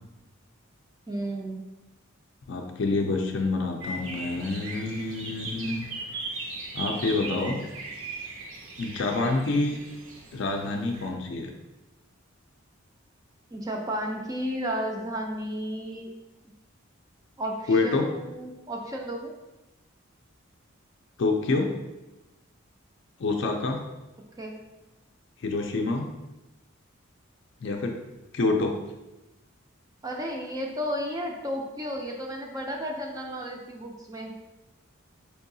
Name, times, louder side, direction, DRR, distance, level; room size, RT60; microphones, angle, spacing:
voice 1, 1.1-1.6 13.5-16.1 17.4-19.3 24.4-24.6 30.0-34.3, equal, 15° right, 0 dB, 0.3 m, -33 dB
voice 2, 2.5-5.9 6.7-7.6 8.8-9.8 10.3-11.5 17.7-18.0 21.2-21.7 23.2-23.8 25.4-26.1 27.6-28.0 28.3-28.7, left 3 dB, 60° left, 2 dB, 0.4 m, -27 dB
sound 1, 3.8-11.1, right 3 dB, 80° right, 0.6 m, -38 dB
4.6 x 2.7 x 2.6 m, 1.0 s
head